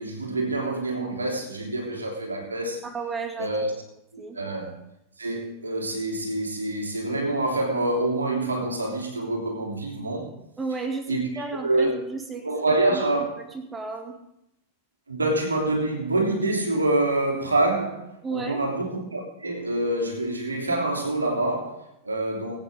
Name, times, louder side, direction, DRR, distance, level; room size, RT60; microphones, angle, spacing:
voice 1, 0.0-2.8 3.4-3.7 4.1-4.8 5.2-10.3 11.1-12.0 12.4-13.4 15.1-22.6, right 2 dB, 75° right, 3.2 m, -26 dB
voice 2, 2.8-3.6 4.2-4.4 10.6-12.4 12.9-13.0 13.5-14.1 18.2-18.6, right 4 dB, 15° right, 2.4 m, -33 dB
22.0 x 9.3 x 3.7 m
figure-of-eight pair, 90°, 0 cm